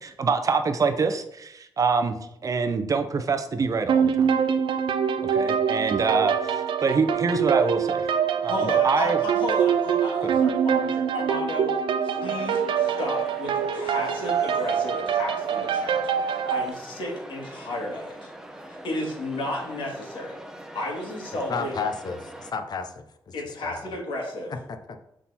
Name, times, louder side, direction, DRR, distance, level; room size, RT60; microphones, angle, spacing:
voice 1, 0.0-2.2 2.4-4.3 5.3-8.1 8.4-9.2 10.2-10.4, right 4 dB, 40° right, 7 dB, 0.7 m, -25 dB
sound 1, 3.9-16.7, right 7 dB, 85° right, 0.5 m, -24 dB
voice 2, 8.4-11.7 12.0-16.0 16.3-18.3 18.7-20.4 20.7-21.8 23.3-24.5, left 1 dB, 75° left, -2 dB, 2.1 m, -33 dB
sound 2, 12.2-22.5, right 1 dB, 5° right, 0.7 m, -42 dB
voice 3, 21.5-23.0 23.6-23.7 24.7-25.1, left 5 dB, 55° left, 8 dB, 0.7 m, -32 dB
6.0 x 3.8 x 4.2 m, 0.77 s
cardioid pair, 110°, 8 cm